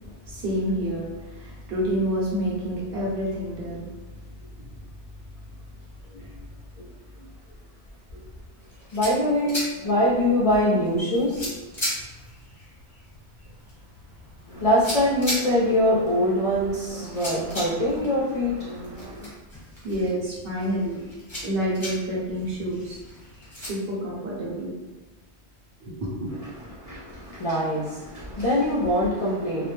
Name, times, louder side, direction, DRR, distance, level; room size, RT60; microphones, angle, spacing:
voice 1, 0.2-3.9 4.6-4.7 19.8-21.0 21.4-23.0 23.6-24.7 25.8-26.3, equal, 60° right, -5 dB, 0.9 m, -28 dB
sound 1, 8.6-23.7, equal, 30° left, 0.9 m, -38 dB
voice 2, 8.9-11.5 14.5-19.3 26.6-29.7, left 1 dB, 50° left, -8 dB, 0.4 m, -24 dB
2.3 x 2.1 x 3.0 m, 1.1 s
omnidirectional pair, 1.1 m